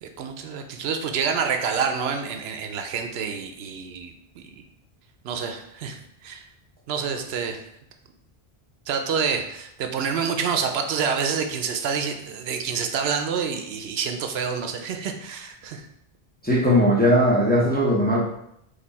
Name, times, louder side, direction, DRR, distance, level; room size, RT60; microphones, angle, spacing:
voice 1, 0.0-4.4 5.2-6.5 6.9-7.6 8.9-15.8, right 6 dB, 80° right, 5 dB, 0.8 m, -28 dB
voice 2, 16.4-18.2, equal, 10° left, -4 dB, 0.6 m, -19 dB
4.3 x 2.7 x 4.1 m, 0.77 s
omnidirectional pair, 1.0 m